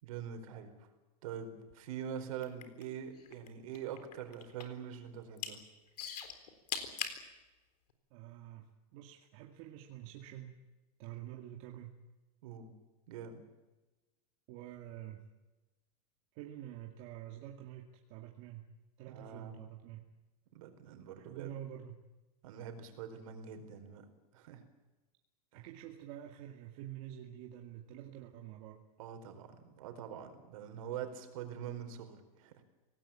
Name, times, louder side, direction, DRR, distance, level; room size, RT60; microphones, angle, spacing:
voice 1, 0.0-0.8 1.2-5.6 12.4-12.7 13.1-13.4 19.1-19.6 20.5-21.5 22.4-24.0 24.3-24.6 25.5-25.7 29.0-32.6, right 8 dB, 60° right, 7 dB, 4.6 m, -44 dB
sound 1, 2.3-3.5 3.7-4.8 5.2-5.5 6.0-7.2 7.9-8.0, left 8 dB, 85° left, 4.0 m, -39 dB
voice 2, 8.1-8.7 8.9-10.6 11.0-11.9 14.5-15.2 16.4-18.6 19.0-20.0 21.2-21.9 25.5-28.8, right 12 dB, 40° right, 1 dB, 2.2 m, -47 dB
25.0 x 18.5 x 9.0 m, 1.1 s
supercardioid pair, 165°, 20 cm